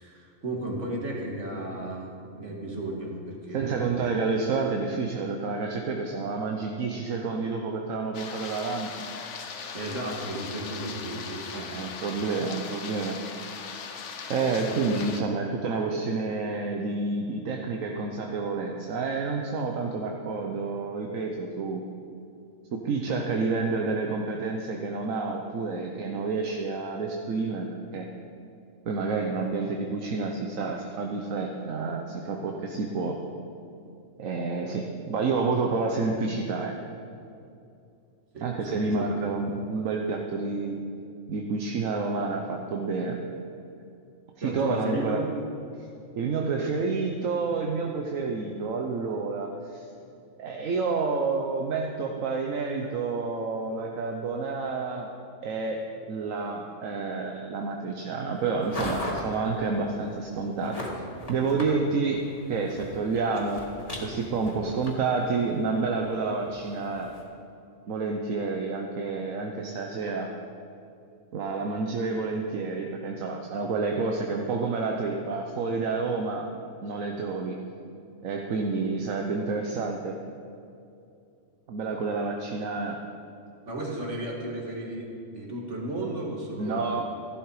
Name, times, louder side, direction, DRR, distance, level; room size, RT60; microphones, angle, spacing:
voice 1, 0.0-3.9 9.7-11.7 12.4-12.5 14.7-14.9 38.3-39.2 44.4-45.3 83.6-87.0, right 1 dB, 60° right, -1 dB, 2.4 m, -34 dB
voice 2, 3.5-8.9 11.5-13.2 14.3-21.8 22.7-28.1 28.9-33.2 34.2-36.7 38.4-40.9 41.3-43.2 44.4-45.2 46.2-49.8 50.4-55.1 55.4-55.8 56.1-60.8 61.3-62.2 62.5-63.7 64.0-67.1 67.9-70.3 71.3-76.5 76.8-77.6 78.2-80.2 81.7-83.0 86.6-87.0, right 4 dB, 80° right, 2 dB, 1.3 m, -29 dB
sound 1, 8.1-15.2, left 6 dB, 65° left, 1.1 m, -39 dB
sound 2, 58.3-67.2, left 1 dB, 25° left, 2.1 m, -40 dB
14.5 x 12.0 x 4.9 m, 2.6 s
omnidirectional pair, 1.4 m